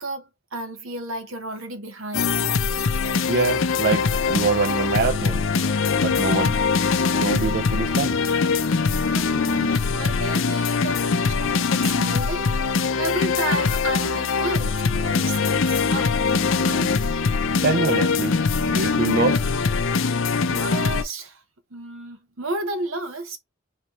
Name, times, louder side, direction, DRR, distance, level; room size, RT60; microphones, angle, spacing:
voice 1, 0.0-2.4 8.8-17.1 20.5-21.4 21.7-23.4, right 2 dB, 70° right, 1.1 m, -33 dB
sound 1, 2.1-21.0, left 5 dB, 65° left, 0.5 m, -22 dB
voice 2, 3.3-5.4 6.0-6.6 7.2-8.2 17.6-18.3 18.7-19.4, right 4 dB, 50° right, 0.4 m, -24 dB
4.5 x 3.1 x 3.1 m
head